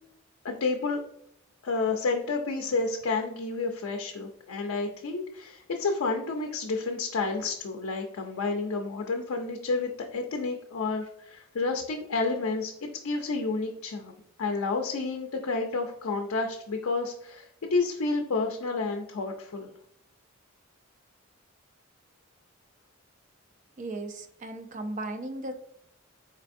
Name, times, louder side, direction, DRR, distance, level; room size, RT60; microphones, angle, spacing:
voice 1, 0.4-1.0 1.6-14.1 14.4-19.7, left 3 dB, 75° left, 3 dB, 0.4 m, -30 dB
voice 2, 23.8-25.5, right 2 dB, 35° right, 6 dB, 0.4 m, -36 dB
4.4 x 3.3 x 2.5 m, 0.76 s
head